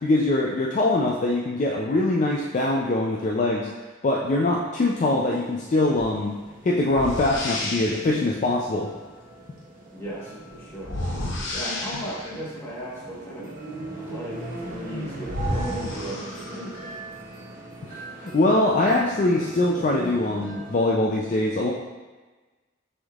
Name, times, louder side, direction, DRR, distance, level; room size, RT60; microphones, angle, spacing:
voice 1, 0.0-3.7 4.0-6.3 6.6-8.9 17.8-21.7, left 2 dB, 40° left, -2 dB, 0.4 m, -23 dB
sound 1, 5.2-20.9, right 2 dB, 45° right, 0.8 m, -39 dB
sound 2, 6.0-6.1 6.9-8.2 10.8-12.4 14.7-14.8 15.2-16.9, left 1 dB, 65° left, 0.8 m, -31 dB
voice 2, 9.9-10.9 11.5-13.5 14.1-17.0, equal, 10° left, -7 dB, 1.2 m, -36 dB
6.2 x 3.5 x 2.4 m, 1.3 s
head